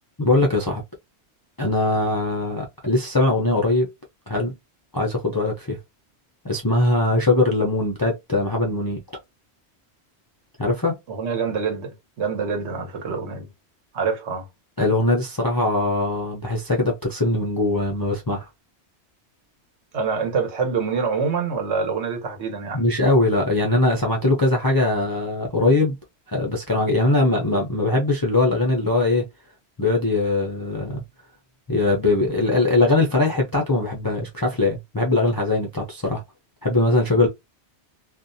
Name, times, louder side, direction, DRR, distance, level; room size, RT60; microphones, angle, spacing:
voice 1, 0.2-0.8 1.6-3.9 4.3-4.5 4.9-5.8 6.4-9.0 10.6-11.0 14.8-18.5 22.7-26.0 26.3-29.3 29.8-31.0 31.7-36.2 36.6-37.3, left 2 dB, 35° left, 0.3 m, -21 dB
voice 2, 11.1-13.5 13.9-14.5 19.9-22.8, right 5 dB, 80° right, 1.2 m, -26 dB
2.5 x 2.1 x 2.5 m
omnidirectional pair, 1.1 m